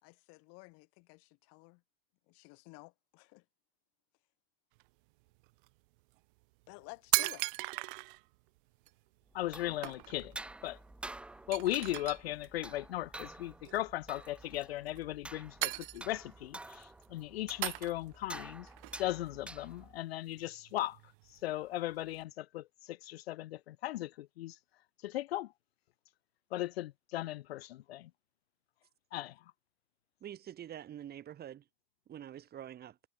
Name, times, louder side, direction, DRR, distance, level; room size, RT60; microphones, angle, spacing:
voice 1, 0.0-1.8 2.3-3.4 6.7-7.5, left 31 dB, 50° left, 2.3 m, -53 dB
sound 1, 4.8-4.9 5.4-5.7 6.4-6.5 6.7-8.2 8.9-9.0 9.3-9.5 9.8-10.3 10.6-10.7 11.0-11.1 11.5-12.5 13.6-14.0 14.6-15.3 15.6-16.4 16.7-17.1 17.6-18.3 18.7-20.0 20.3-22.2, right 25 dB, 55° right, 0.9 m, -38 dB
voice 2, 9.3-10.4 10.6-10.8 11.5-18.7 19.0-21.0 21.3-24.6 25.0-25.5 26.5-28.1 29.1-29.4, left 15 dB, 80° left, 0.5 m, -37 dB
sound 2, 9.3-20.0, right 2 dB, 5° right, 0.4 m, -49 dB
voice 3, 30.2-31.7 32.1-33.0, right 10 dB, 30° right, 3.4 m, -46 dB
hypercardioid pair, 105°, 31 cm